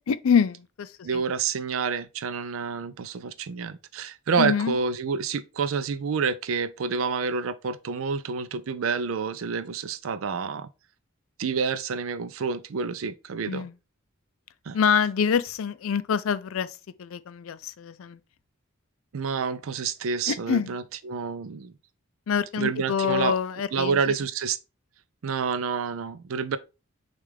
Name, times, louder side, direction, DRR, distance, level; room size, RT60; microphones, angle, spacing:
voice 1, 0.0-1.2 4.4-4.7 13.5-13.7 14.7-18.2 20.3-20.7 22.3-24.1, left 7 dB, 75° left, 0.4 m, -26 dB
voice 2, 1.0-10.7 11.4-13.7 14.7-14.8 19.1-21.7 22.6-23.4 23.7-24.6 25.2-26.6, right 5 dB, 70° right, 0.4 m, -28 dB
6.5 x 2.4 x 3.3 m
head